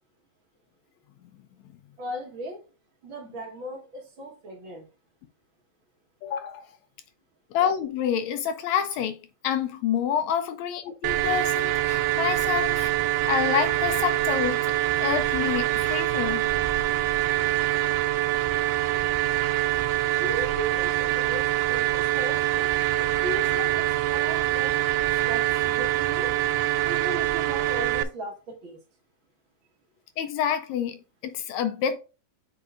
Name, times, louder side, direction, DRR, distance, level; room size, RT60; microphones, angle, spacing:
voice 1, 2.0-2.6 3.0-4.9 20.0-22.7 23.0-26.3 26.8-28.8, right 1 dB, 55° right, 1.5 m, -37 dB
voice 2, 6.2-6.7 7.5-9.2 9.4-12.9 13.3-14.7 15.0-16.5 30.2-32.0, left 8 dB, 80° left, 1.6 m, -28 dB
sound 1, 11.0-28.0, right 15 dB, 85° right, 2.1 m, -25 dB
8.5 x 5.0 x 2.4 m
omnidirectional pair, 3.8 m